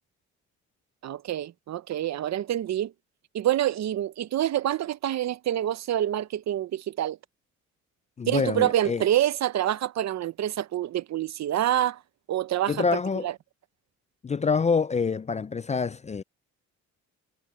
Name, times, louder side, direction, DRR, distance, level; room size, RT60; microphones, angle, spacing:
voice 1, 1.0-2.9 3.3-7.2 8.3-12.0 12.3-12.8 13.2-13.3, right 12 dB, 60° right, 0.8 m, -27 dB
voice 2, 8.2-9.0 12.7-13.3 14.2-16.2, left 5 dB, 25° left, 0.4 m, -26 dB
cardioid pair, 90°, 30 cm